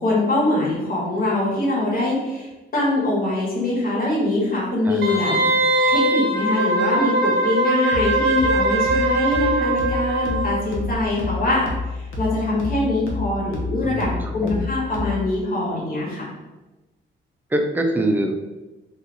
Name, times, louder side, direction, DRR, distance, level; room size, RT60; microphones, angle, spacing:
voice 1, 0.0-5.3 5.9-11.7 11.9-16.3, left 2 dB, 45° left, -5 dB, 1.3 m, -23 dB
Wind instrument woodwind instrument, 5.0-10.6 10.9-11.0, right 2 dB, 60° right, 0.6 m, -21 dB
sound 1, 7.9-15.4, left 3 dB, 85° left, 0.8 m, -30 dB
voice 2, 13.8-14.6 17.5-18.4, right 1 dB, 10° right, 3 dB, 0.3 m, -24 dB
2.7 x 2.4 x 3.8 m, 1.1 s
cardioid pair, 125°, 20 cm